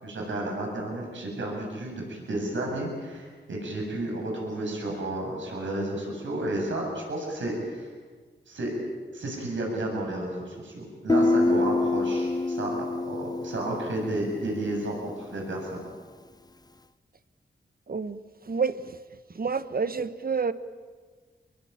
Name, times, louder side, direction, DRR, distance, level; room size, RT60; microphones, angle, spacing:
voice 1, 0.0-7.9 8.5-8.7 9.1-15.9, right 1 dB, 85° right, 0 dB, 7.5 m, -32 dB
Guitar, 11.1-14.7, left 2 dB, 20° left, 0.9 m, -26 dB
voice 2, 17.9-18.2 18.4-19.0 19.3-20.5, right 5 dB, 50° right, 13 dB, 1.3 m, -28 dB
25.0 x 22.5 x 9.0 m, 1.5 s
cardioid pair, 60°, 19 cm